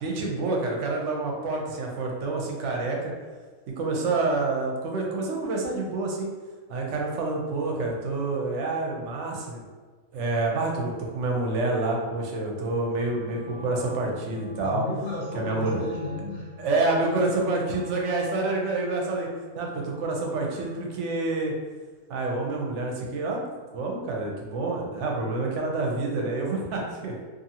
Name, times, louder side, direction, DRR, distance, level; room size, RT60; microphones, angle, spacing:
voice 1, 0.0-3.1 3.8-6.3 6.7-9.6 10.1-14.8 15.3-15.8 16.6-19.3 19.6-21.5 22.1-23.4 23.7-27.1, right 3 dB, 65° right, -1 dB, 0.8 m, -28 dB
Wind instrument woodwind instrument, 12.9-20.9, left 1 dB, 35° right, 0.7 m, -43 dB
voice 2, 14.6-16.5, left 2 dB, 45° left, -5 dB, 0.7 m, -33 dB
sound 1, 15.7-17.2 17.5-19.3, left 3 dB, 85° left, 1.1 m, -49 dB
2.6 x 2.6 x 2.7 m, 1.4 s
omnidirectional pair, 1.5 m